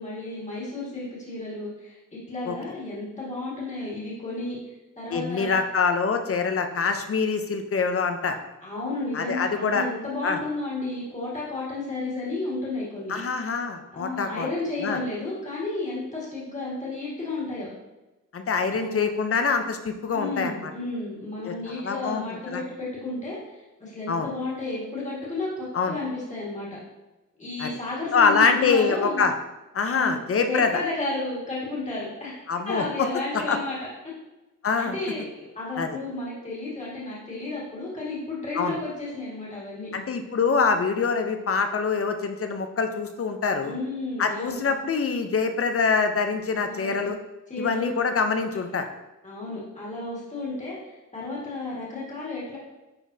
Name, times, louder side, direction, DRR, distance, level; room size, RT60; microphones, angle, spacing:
voice 1, 0.0-4.6 5.0-5.6 8.6-13.1 13.9-17.7 18.7-19.2 20.1-26.8 27.4-29.3 29.9-30.2 30.4-33.8 34.8-39.9 43.6-44.6 46.6-47.0 47.5-47.9 49.2-52.6, left 2 dB, 20° left, -7 dB, 1.7 m, -32 dB
voice 2, 5.1-8.4 9.1-9.9 10.2-10.4 13.1-14.5 14.8-15.0 18.3-20.7 21.4-21.5 21.8-22.2 22.5-22.6 24.1-24.3 25.7-26.0 27.6-27.7 28.1-29.3 29.7-30.7 32.5-33.1 33.3-33.6 34.6-34.9 35.8-35.9 38.6-38.8 39.9-43.8 44.2-47.2 47.6-48.9, left 5 dB, 45° left, 6 dB, 0.6 m, -24 dB
9.8 x 3.9 x 2.7 m, 1.0 s
wide cardioid pair, 160°, 32 cm